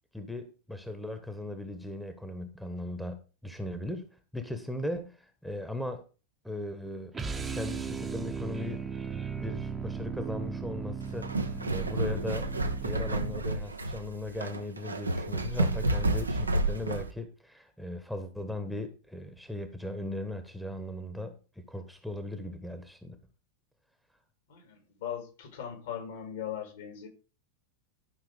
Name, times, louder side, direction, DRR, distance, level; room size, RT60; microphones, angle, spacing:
voice 1, 0.1-4.0 4.3-6.0 6.4-7.1 7.5-8.8 9.4-12.5 12.8-21.4 21.7-23.2, left 1 dB, ahead, 1.4 m, -38 dB
sound 1, 7.1-13.6, right 6 dB, 15° right, 1.1 m, -37 dB
sound 2, 11.0-17.1, right 2 dB, 80° right, 1.1 m, -30 dB
voice 2, 24.5-27.1, left 9 dB, 60° left, 3.3 m, -39 dB
12.0 x 5.8 x 5.1 m
figure-of-eight pair, 90°, 0 cm